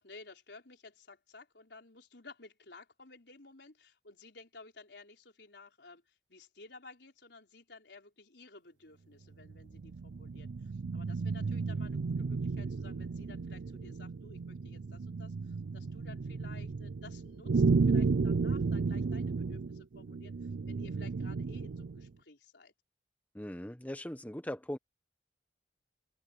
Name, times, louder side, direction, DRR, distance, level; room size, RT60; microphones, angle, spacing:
voice 1, 0.0-22.7, left 3 dB, 75° left, 4.3 m, -55 dB
sound 1, 9.4-22.1, right 4 dB, 90° right, 0.5 m, -33 dB
voice 2, 23.3-24.8, left 1 dB, 10° left, 1.1 m, -39 dB
open air
head